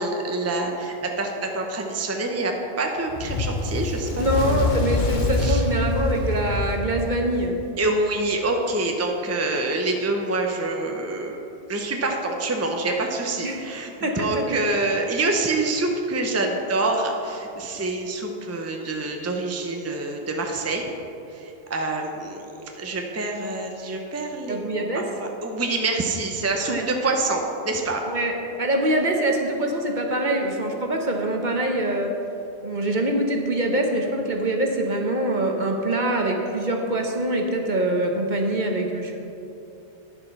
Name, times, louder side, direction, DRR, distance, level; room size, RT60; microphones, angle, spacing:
voice 1, 0.0-4.7 5.4-5.6 7.8-11.3 11.7-20.8 21.3-22.5 22.7-28.0, right 2 dB, 15° right, 2 dB, 0.7 m, -26 dB
Fire, 3.1-7.7, left 3 dB, 45° left, 0.9 m, -25 dB
voice 2, 4.2-7.6 13.4-13.6 14.0-14.4 24.5-25.0 26.7-26.9 28.1-32.2 32.6-39.1, right 1 dB, 45° right, 2 dB, 1.0 m, -24 dB
10.5 x 7.6 x 5.6 m, 2.8 s
omnidirectional pair, 1.2 m